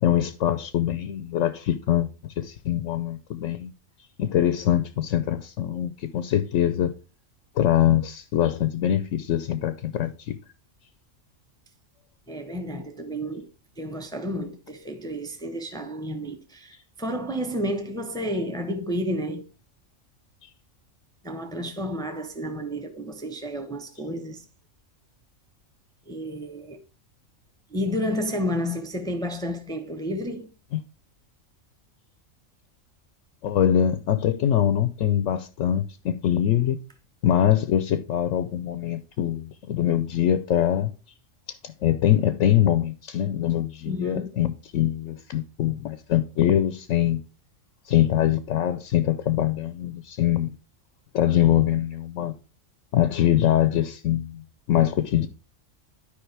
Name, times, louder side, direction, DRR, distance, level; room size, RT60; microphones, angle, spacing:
voice 1, 0.0-2.1 2.4-3.7 4.2-6.9 7.6-10.4 30.7-30.8 33.4-36.8 37.2-40.9 41.5-47.2 47.9-50.5 51.1-52.3 52.9-55.3, left 11 dB, 75° left, 1.0 m, -23 dB
voice 2, 12.3-13.5 13.8-19.4 21.2-24.4 26.1-26.8 27.7-30.5 43.8-44.3, equal, 5° left, 0.8 m, -31 dB
12.0 x 5.1 x 3.3 m
omnidirectional pair, 1.3 m